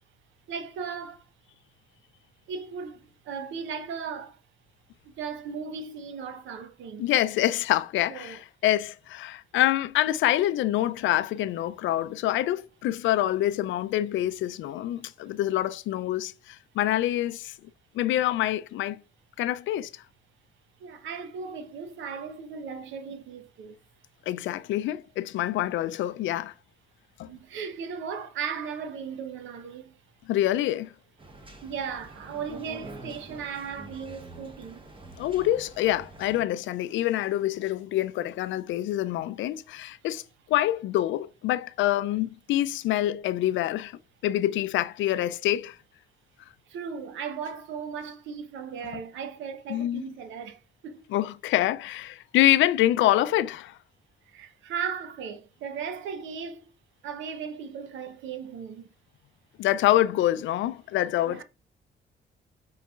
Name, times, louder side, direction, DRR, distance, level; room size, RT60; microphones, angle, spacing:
voice 1, 0.5-1.2 2.5-4.4 5.2-7.1 8.1-8.4 20.8-23.8 27.3-30.0 31.6-34.8 46.7-51.1 54.3-56.6 57.0-58.9 61.2-61.4, right 6 dB, 90° right, 0.8 m, -37 dB
voice 2, 7.0-17.5 17.9-19.0 19.4-19.9 24.3-26.5 27.2-27.3 30.3-30.9 35.2-40.2 40.5-45.8 49.7-50.0 51.1-53.8 59.6-61.4, left 14 dB, 85° left, 0.4 m, -26 dB
sound 1, 31.2-36.4, right 2 dB, 25° right, 1.2 m, -46 dB
5.4 x 4.0 x 2.4 m
cardioid pair, 80°, 19 cm